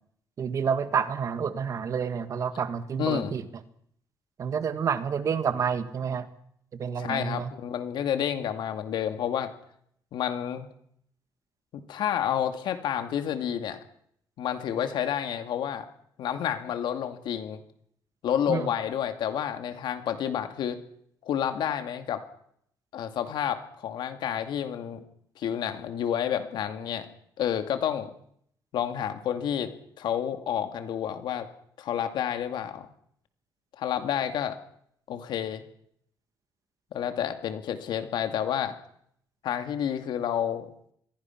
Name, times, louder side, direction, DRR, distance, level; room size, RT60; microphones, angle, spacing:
voice 1, 0.4-3.4 4.4-6.3 6.7-7.5 18.5-18.7, right 7 dB, 45° right, 11 dB, 1.6 m, -29 dB
voice 2, 3.0-3.3 7.0-9.5 10.1-10.7 11.7-13.8 14.4-15.9 16.2-17.6 18.2-20.8 21.2-22.2 22.9-25.0 25.4-27.1 27.4-28.1 28.7-31.5 31.8-32.9 33.8-34.6 35.1-35.6 36.9-38.7 39.4-40.7, left 9 dB, 85° left, 8 dB, 2.3 m, -30 dB
26.5 x 22.5 x 5.9 m, 0.69 s
cardioid pair, 170°, 8 cm